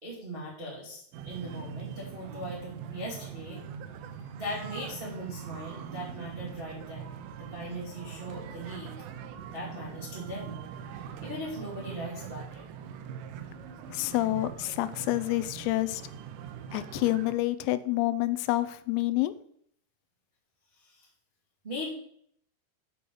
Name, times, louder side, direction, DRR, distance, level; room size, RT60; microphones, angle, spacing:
voice 1, 0.0-3.6 4.3-7.1 7.4-8.9 9.5-10.6 10.9-12.6 20.8-21.1 21.6-21.9, equal, 30° right, -4 dB, 0.9 m, -39 dB
sound 1, 1.1-17.3, right 8 dB, 80° right, 3.2 m, -42 dB
voice 2, 13.9-16.0 16.7-19.3, left 17 dB, 90° left, 14 dB, 3.4 m, -28 dB
8.7 x 6.2 x 7.0 m, 0.65 s
omnidirectional pair, 5.9 m